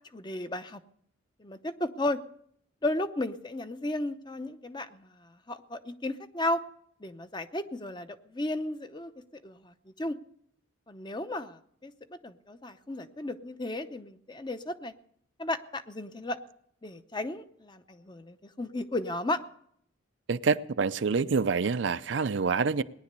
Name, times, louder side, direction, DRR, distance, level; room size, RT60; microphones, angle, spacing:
voice 1, 0.1-0.8 1.4-2.2 2.8-6.6 7.0-10.1 10.9-14.9 15.4-16.4 16.8-19.4, left 1 dB, 20° left, 10 dB, 0.7 m, -34 dB
voice 2, 20.3-22.8, right 5 dB, 60° right, 13 dB, 0.5 m, -27 dB
19.0 x 10.5 x 6.7 m, 0.68 s
head